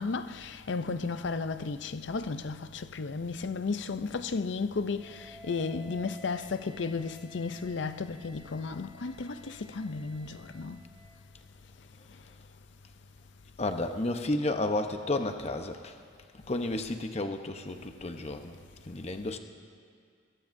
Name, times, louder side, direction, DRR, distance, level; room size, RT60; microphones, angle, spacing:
voice 1, 0.0-10.8, left 4 dB, 65° left, 0.5 m, -34 dB
Wind instrument woodwind instrument, 4.9-11.1, equal, ahead, 4.9 m, -54 dB
voice 2, 13.6-16.0 16.5-19.4, left 2 dB, 35° left, 0.9 m, -32 dB
23.0 x 21.0 x 2.7 m
head